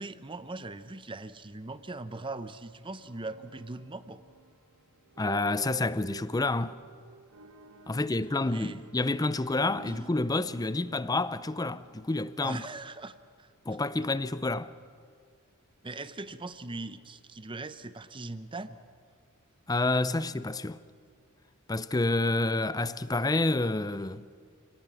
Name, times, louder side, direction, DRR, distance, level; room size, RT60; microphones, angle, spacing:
voice 1, 0.0-4.2 7.9-8.0 8.4-8.8 12.4-13.5 15.8-18.8, right 2 dB, 25° right, 0.7 m, -40 dB
sound 1, 2.9-13.0, right 6 dB, 85° right, 1.4 m, -51 dB
voice 2, 5.2-6.8 7.9-12.6 13.7-14.7 19.7-20.8 21.7-24.2, left 2 dB, 15° left, 0.5 m, -29 dB
28.0 x 18.5 x 7.1 m
head